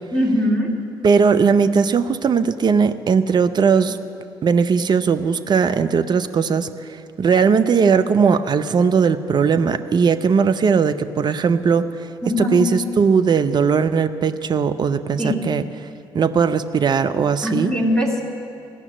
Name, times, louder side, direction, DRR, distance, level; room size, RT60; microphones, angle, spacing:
voice 1, 0.1-0.7 12.2-12.7 15.2-15.5 17.4-18.2, left 1 dB, 5° left, -1 dB, 2.5 m, -21 dB
voice 2, 1.0-4.0 4.4-11.9 12.4-15.6 16.1-17.7, right 6 dB, 35° right, 10 dB, 0.6 m, -18 dB
16.0 x 6.0 x 8.9 m, 2.7 s
figure-of-eight pair, 45°, 12 cm